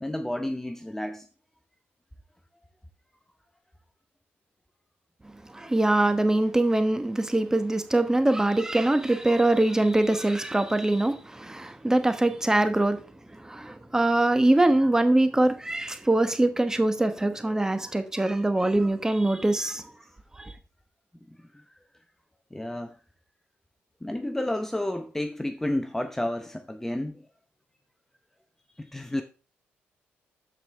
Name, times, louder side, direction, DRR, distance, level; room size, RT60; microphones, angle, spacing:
voice 1, 0.0-1.2 21.5-21.6 22.5-23.0 24.0-27.2 28.8-29.2, left 1 dB, 10° left, 0.8 m, -31 dB
voice 2, 5.5-13.0 13.4-19.8 20.4-20.5, right 2 dB, 15° right, 1.2 m, -23 dB
13.0 x 5.0 x 3.4 m
cardioid pair, 75°, 4 cm